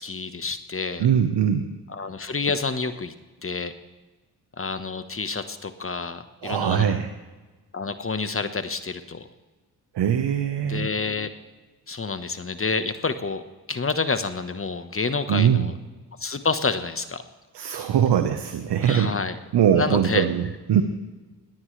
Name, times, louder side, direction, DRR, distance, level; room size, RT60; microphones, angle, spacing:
voice 1, 0.0-1.1 1.9-3.1 3.4-3.7 4.6-7.0 7.7-9.3 10.6-11.3 11.9-13.4 13.7-15.7 16.2-17.2 17.6-17.8 18.8-19.4 19.7-20.3, left 4 dB, 30° left, 10 dB, 1.3 m, -28 dB
voice 2, 1.0-1.7 6.4-7.1 9.9-10.9 15.3-15.7 17.5-19.2 19.5-20.8, right 9 dB, 70° right, 7 dB, 1.3 m, -21 dB
21.0 x 18.5 x 3.4 m, 1.2 s
supercardioid pair, 55°, 42 cm